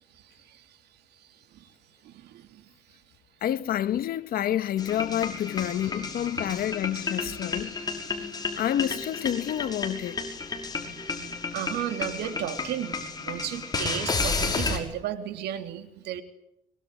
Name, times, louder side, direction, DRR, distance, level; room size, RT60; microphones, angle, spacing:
voice 1, 2.0-2.6 5.6-6.0 6.3-6.7 7.2-8.2 8.4-8.6 11.1-16.2, right 10 dB, 80° right, 3.4 m, -35 dB
voice 2, 3.4-7.7 8.6-10.2, left 11 dB, 60° left, 1.7 m, -28 dB
sound 1, 4.8-14.8, left 4 dB, 25° left, 6.0 m, -32 dB
24.5 x 23.0 x 9.3 m
cardioid pair, 110°, 17 cm